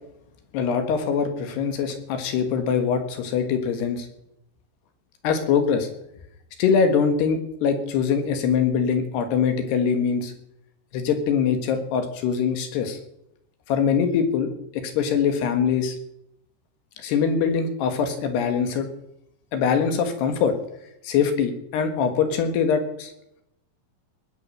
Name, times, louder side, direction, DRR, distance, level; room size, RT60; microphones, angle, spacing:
voice 1, 0.5-4.1 5.2-5.9 6.6-10.3 10.9-13.0 13.7-16.0 17.0-18.9 19.5-20.6 21.0-23.1, left 6 dB, 75° left, 7 dB, 3.6 m, -23 dB
20.0 x 8.7 x 6.4 m, 0.80 s
omnidirectional pair, 5.0 m